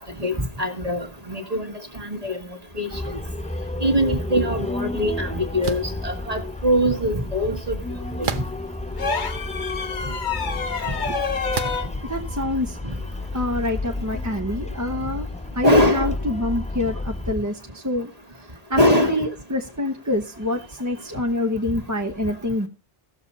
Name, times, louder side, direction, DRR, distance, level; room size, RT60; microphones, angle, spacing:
voice 1, 0.2-2.4 2.8-2.9 3.8-7.8 8.2-8.3 15.6-16.1 18.8-19.2, equal, 40° right, 2.0 m, -22 dB
sound 1, 2.9-17.4, left 2 dB, 10° left, 0.3 m, -32 dB
sound 2, 5.6-6.0 8.2-8.8 9.5-9.6 11.5-11.9, right 6 dB, 55° right, 1.0 m, -30 dB
sound 3, 9.0-11.9 13.6-13.8, left 5 dB, 50° left, 1.1 m, -28 dB
voice 2, 12.0-12.8 13.3-15.3 15.5-18.1 18.7-22.7, left 1 dB, 20° right, 1.1 m, -26 dB
17.0 x 7.0 x 4.1 m
omnidirectional pair, 1.0 m